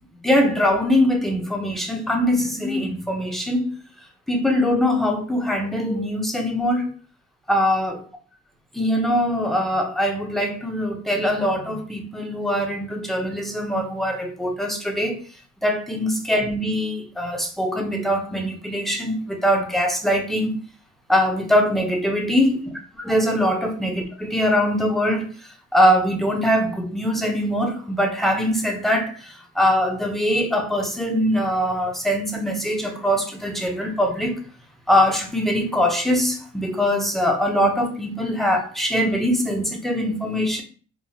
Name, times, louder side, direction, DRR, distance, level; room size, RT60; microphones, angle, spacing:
voice 1, 0.2-3.7 4.3-6.9 7.5-8.0 8.7-15.2 15.6-20.6 21.1-22.6 22.9-25.3 25.7-34.4 34.9-40.6, equal, ahead, 0.8 m, -22 dB
4.5 x 2.4 x 2.8 m
cardioid pair, 90°, 30 cm